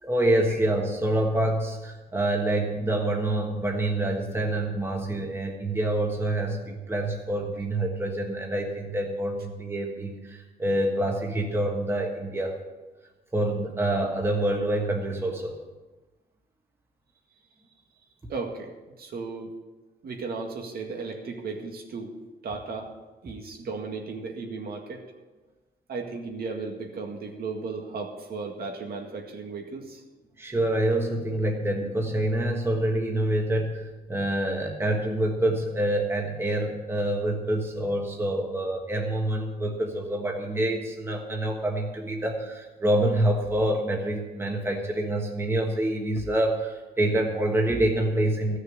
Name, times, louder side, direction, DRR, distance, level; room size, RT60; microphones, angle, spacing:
voice 1, 0.0-12.6 13.3-15.5 30.4-48.6, right 1 dB, 15° right, 1 dB, 1.4 m, -26 dB
voice 2, 18.3-19.5 20.0-22.2 22.4-22.9 23.2-25.0 25.9-30.0, right 4 dB, 70° right, 2 dB, 2.0 m, -35 dB
14.5 x 6.5 x 8.7 m, 1.2 s
wide cardioid pair, 180°, 17 cm